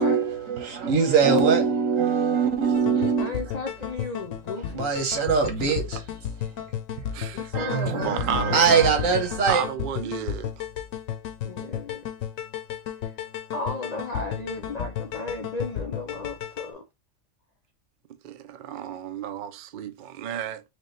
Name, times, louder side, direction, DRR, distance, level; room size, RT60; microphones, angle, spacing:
voice 1, 0.0-3.4 4.7-6.0 7.5-9.6, right 5 dB, 80° right, 1.5 m, -22 dB
sound 1, 2.7-16.7, left 9 dB, 80° left, 1.1 m, -34 dB
voice 2, 3.2-4.8 7.3-8.2 11.4-12.1 13.5-16.8, left 3 dB, 55° left, 0.4 m, -34 dB
voice 3, 7.1-7.5 7.9-8.6 9.5-10.5 18.2-20.6, right 9 dB, 60° right, 0.5 m, -32 dB
4.9 x 2.3 x 3.2 m
omnidirectional pair, 1.4 m